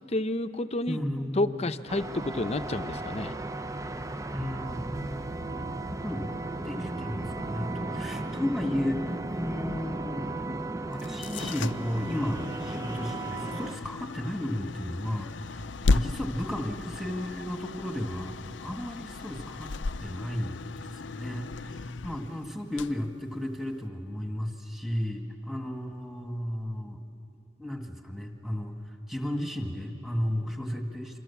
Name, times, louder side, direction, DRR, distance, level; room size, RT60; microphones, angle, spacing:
voice 1, 0.1-1.0 1.4-3.3, left 2 dB, 35° left, 11 dB, 0.8 m, -29 dB
voice 2, 0.9-1.7 4.3-5.2 5.5-6.3 6.6-9.0 9.3-10.3 10.8-19.7 20.0-20.6 20.9-27.0 27.6-28.8 29.1-31.2, left 1 dB, ahead, 3 dB, 1.9 m, -34 dB
sound 1, 1.9-13.8, right 2 dB, 15° right, 0.7 m, -35 dB
sound 2, 10.9-23.9, left 3 dB, 70° left, 0.6 m, -35 dB
27.0 x 26.0 x 7.2 m, 2.8 s
head